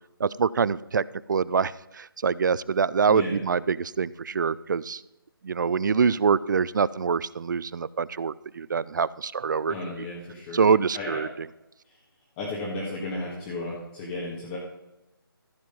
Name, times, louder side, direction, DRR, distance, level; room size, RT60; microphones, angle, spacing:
voice 1, 0.2-5.0 5.4-9.7 10.5-11.3, right 6 dB, 55° right, 20 dB, 0.4 m, -25 dB
voice 2, 3.1-3.4 9.7-11.2 11.8-12.0 12.4-14.6, left 2 dB, 20° left, -4 dB, 1.8 m, -34 dB
14.5 x 5.1 x 5.3 m, 0.94 s
figure-of-eight pair, 155°, 12 cm